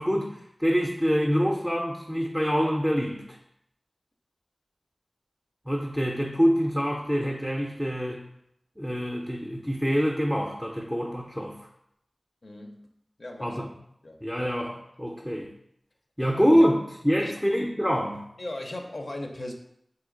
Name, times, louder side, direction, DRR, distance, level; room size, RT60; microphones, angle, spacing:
voice 1, 0.0-3.4 5.7-8.2 8.8-11.6 13.4-13.7 14.2-15.5 16.2-18.3, equal, ahead, 0 dB, 0.5 m, -25 dB
voice 2, 12.4-12.9 13.2-13.7 14.0-14.5 17.2-17.3 18.4-19.5, left 1 dB, 65° left, 2 dB, 0.5 m, -38 dB
3.9 x 2.8 x 3.7 m, 0.76 s
wide cardioid pair, 65°, 0 cm